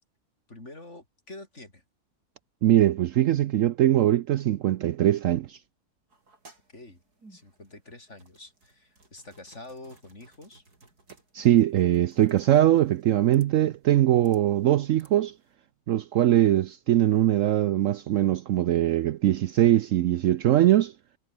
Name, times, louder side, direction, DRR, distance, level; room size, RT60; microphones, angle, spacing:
voice 1, 0.5-1.8 6.7-7.0 7.3-10.6, left 2 dB, 45° left, 5.7 m, -46 dB
voice 2, 2.6-5.6 11.3-15.3 15.9-20.9, right 13 dB, 65° right, 0.9 m, -21 dB
sound 1, 6.1-15.5, right 2 dB, 85° right, 6.0 m, -59 dB
omnidirectional pair, 1.6 m